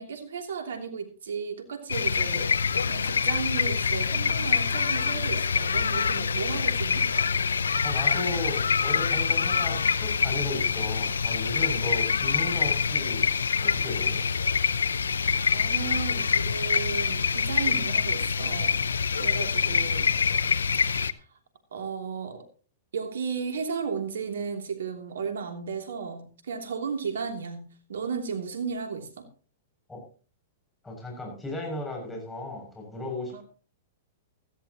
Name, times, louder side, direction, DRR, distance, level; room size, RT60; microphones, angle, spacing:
voice 1, 0.0-7.1 15.5-18.8 19.2-20.1 21.1-21.4 21.7-22.5 22.9-29.3 33.3-33.4, right 5 dB, 80° right, 5 dB, 3.0 m, -34 dB
sound 1, 1.9-21.1, left 6 dB, 85° left, 0.6 m, -25 dB
voice 2, 7.8-13.3 13.6-14.2 29.9-30.0 30.8-33.4, left 2 dB, 10° left, -1 dB, 6.8 m, -35 dB
16.5 x 14.5 x 3.0 m, 0.38 s
hypercardioid pair, 115°, 0 cm